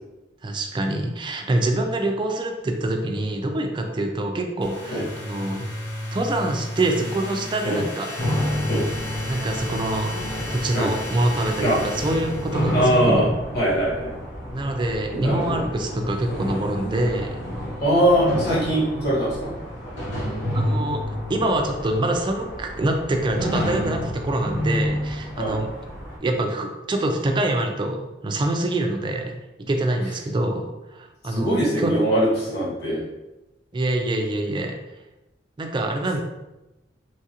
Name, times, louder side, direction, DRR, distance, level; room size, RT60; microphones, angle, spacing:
voice 1, 0.4-5.6 6.1-8.1 9.3-10.1 10.5-13.3 14.5-17.4 20.5-21.0 21.3-25.7 26.2-31.9 33.7-34.8 35.6-36.2, right 1 dB, 25° right, 4 dB, 0.3 m, -25 dB
sound 1, 4.6-12.9, left 1 dB, 10° left, 0.8 m, -33 dB
sound 2, 8.2-26.2, equal, 80° left, 0.9 m, -30 dB
voice 2, 12.7-13.3 13.5-14.1 15.2-15.5 17.8-19.5 25.4-25.6 31.3-33.1, right 1 dB, 60° left, -7 dB, 1.3 m, -21 dB
3.1 x 2.4 x 2.8 m, 1.0 s
head